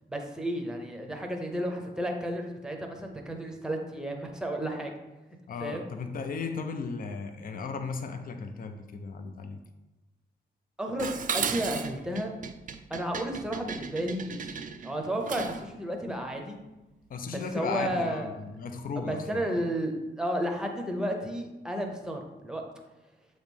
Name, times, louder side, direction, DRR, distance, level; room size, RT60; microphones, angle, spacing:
voice 1, 0.1-4.9 5.6-5.9 10.8-12.3 12.9-16.6 17.3-18.3 19.0-22.6, right 1 dB, 5° right, 2 dB, 0.7 m, -32 dB
voice 2, 5.5-9.6 17.1-19.4, left 4 dB, 50° left, 6 dB, 0.5 m, -35 dB
Dishes pots and pans, 11.0-15.7, right 6 dB, 45° right, 0.4 m, -35 dB
7.3 x 3.1 x 5.3 m, 1.0 s
wide cardioid pair, 165°, 19 cm